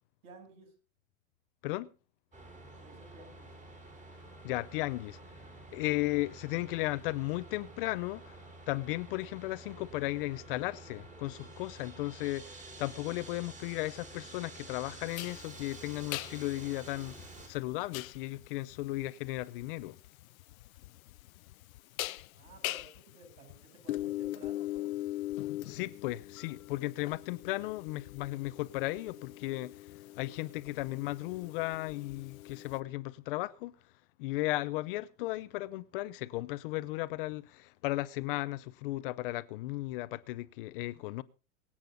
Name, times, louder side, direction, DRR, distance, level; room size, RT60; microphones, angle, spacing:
voice 1, 0.2-0.7 2.7-3.5 22.3-25.0, right 2 dB, 75° right, 7.6 m, -54 dB
sound 1, 2.3-17.5, right 2 dB, 15° right, 3.8 m, -50 dB
voice 2, 4.4-5.2 5.7-8.3 8.7-17.2 17.5-20.0 25.6-29.7 30.2-33.7 34.2-41.2, left 18 dB, 40° left, 0.6 m, -35 dB
sound 2, 15.1-32.8, left 16 dB, 75° left, 0.7 m, -42 dB
24.0 x 8.8 x 3.9 m
supercardioid pair, 155°, 42 cm